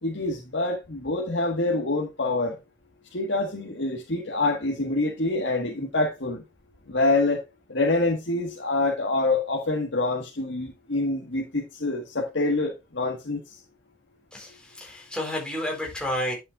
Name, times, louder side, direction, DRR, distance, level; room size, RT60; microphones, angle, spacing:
voice 1, 0.0-2.6 3.1-6.4 6.9-7.4 7.7-13.4, left 2 dB, 75° left, 1.7 m, -26 dB
voice 2, 14.3-16.3, left 1 dB, 5° left, 4.0 m, -31 dB
11.0 x 7.4 x 2.5 m
head